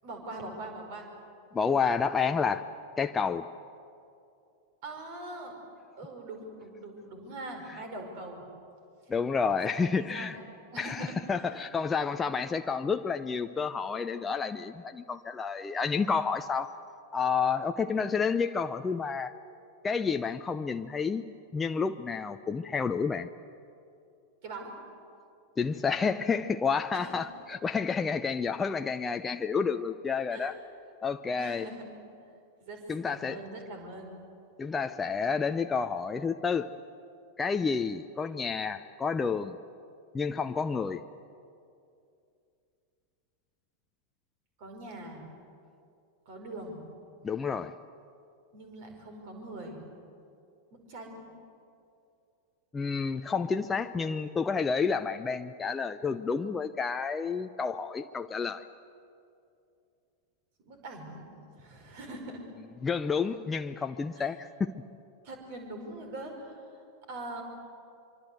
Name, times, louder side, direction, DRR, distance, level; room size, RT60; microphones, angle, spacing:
voice 1, 0.0-1.1 4.8-5.5 6.0-8.4 9.1-9.2 9.8-10.4 10.7-11.7 24.4-24.7 26.9-27.2 30.3-30.6 31.4-31.9 32.6-34.1 44.6-45.3 46.3-46.8 48.5-49.8 50.7-51.2 60.6-61.3 61.6-62.4 64.1-64.3 65.2-67.4, right 2 dB, 50° right, 4 dB, 5.4 m, -42 dB
voice 2, 1.5-2.6 3.0-3.5 9.1-10.4 10.8-16.7 17.1-19.3 19.8-21.3 21.5-23.3 25.6-30.6 31.0-31.7 32.9-33.4 34.6-36.7 37.4-39.6 40.1-41.0 47.2-47.7 52.7-58.6 62.8-64.7, left 5 dB, 15° left, 8 dB, 0.6 m, -30 dB
25.0 x 24.5 x 8.1 m, 2.6 s
figure-of-eight pair, 90°, 0 cm